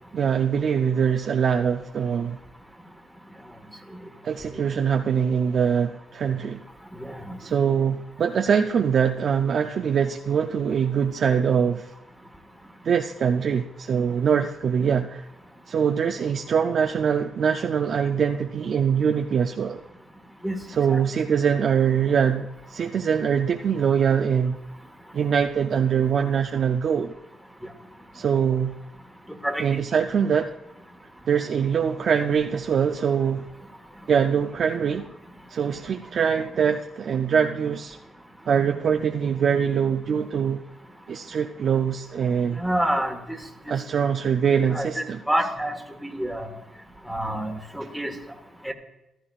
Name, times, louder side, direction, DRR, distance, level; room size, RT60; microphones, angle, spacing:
voice 1, 0.1-2.4 4.2-6.6 7.4-11.9 12.8-15.3 15.7-19.8 20.7-24.6 25.1-27.1 28.1-28.7 29.6-30.5 31.3-33.5 34.1-35.1 35.5-38.0 38.5-40.6 41.1-42.6 43.7-45.2, right 7 dB, 55° right, 0.5 m, -23 dB
voice 2, 7.0-7.4 20.4-20.6 20.9-21.0 29.4-29.7 42.6-43.2 44.7-45.7 46.0-46.5 47.1-48.1 48.6-48.7, right 1 dB, ahead, 1.4 m, -27 dB
15.0 x 12.5 x 2.4 m
cardioid pair, 90°, 0 cm